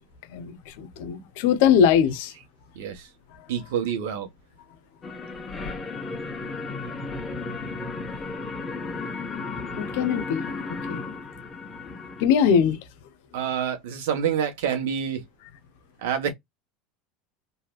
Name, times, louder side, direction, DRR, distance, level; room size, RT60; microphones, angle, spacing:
voice 1, 0.3-2.3 9.8-10.5 10.9-11.0 12.2-12.8, left 7 dB, 75° left, 0.7 m, -21 dB
voice 2, 2.7-3.1 3.5-4.3 13.3-15.2 16.0-16.3, right 8 dB, 80° right, 1.1 m, -27 dB
sound 1, 5.0-12.2, left 3 dB, 20° left, 1.1 m, -34 dB
3.2 x 2.6 x 2.3 m
supercardioid pair, 115°, 0 cm